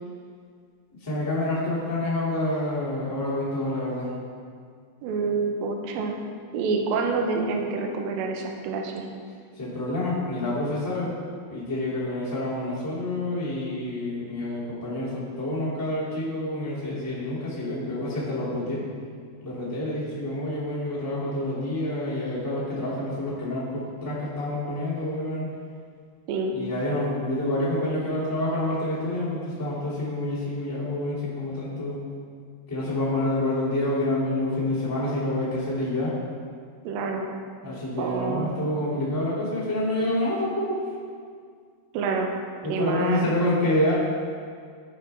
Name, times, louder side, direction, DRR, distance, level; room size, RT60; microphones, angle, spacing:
voice 1, 1.0-4.1 9.6-11.1 11.5-18.8 19.4-25.5 26.5-32.0 32.7-36.1 37.6-40.8 42.6-43.9, left 1 dB, 10° left, -9 dB, 0.8 m, -28 dB
voice 2, 5.0-6.2 6.5-9.1 26.3-26.6 36.8-37.3 38.0-38.5 41.9-42.3 42.7-43.3, right 4 dB, 80° right, 2 dB, 2.2 m, -27 dB
14.0 x 5.4 x 3.4 m, 2.1 s
omnidirectional pair, 4.8 m